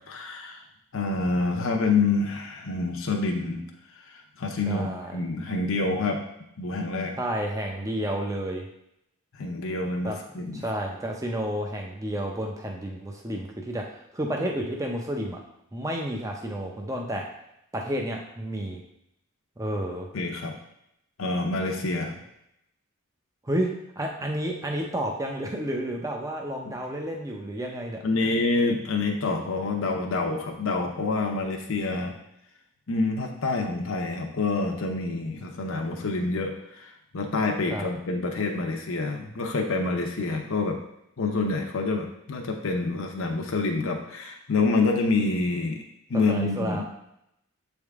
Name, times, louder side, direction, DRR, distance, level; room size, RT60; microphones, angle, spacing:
voice 1, 0.1-0.6 0.9-3.6 4.1-6.2 6.6-7.1 9.4-10.6 20.1-20.6 21.2-22.2 28.0-32.1 32.9-40.8 41.2-45.8 46.1-46.8, left 3 dB, 70° left, 2 dB, 0.7 m, -27 dB
voice 2, 4.7-5.2 7.2-8.7 10.0-10.2 10.6-15.4 15.7-17.3 17.7-18.8 19.6-20.1 23.4-23.7 24.0-28.3 37.7-37.9 46.1-46.8, right 1 dB, 15° right, 1 dB, 0.6 m, -31 dB
7.5 x 3.5 x 3.5 m, 0.79 s
head